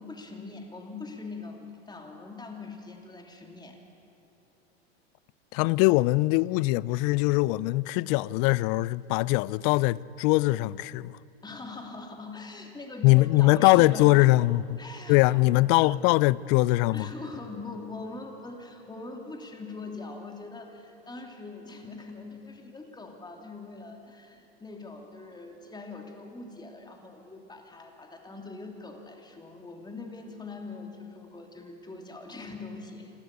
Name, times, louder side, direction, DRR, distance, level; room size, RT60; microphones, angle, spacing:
voice 1, 0.0-3.8 11.4-14.3 14.8-15.5 15.8-16.0 16.9-33.1, left 3 dB, 15° left, 2.9 m, -42 dB
voice 2, 5.5-11.2 13.0-14.8 15.1-17.1, left 20 dB, 50° left, 0.5 m, -22 dB
27.5 x 13.0 x 8.2 m
hypercardioid pair, 105°, 30 cm